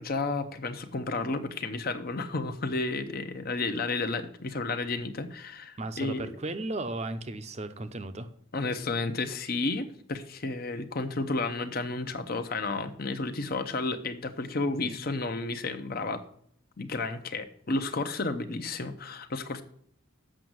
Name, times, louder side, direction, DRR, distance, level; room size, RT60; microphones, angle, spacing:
voice 1, 0.0-6.3 8.5-16.2 16.8-19.6, left 3 dB, 50° left, 9 dB, 0.8 m, -32 dB
voice 2, 5.8-8.3 14.8-15.0, right 2 dB, 35° right, 9 dB, 0.7 m, -35 dB
7.6 x 6.3 x 7.8 m, 0.67 s
head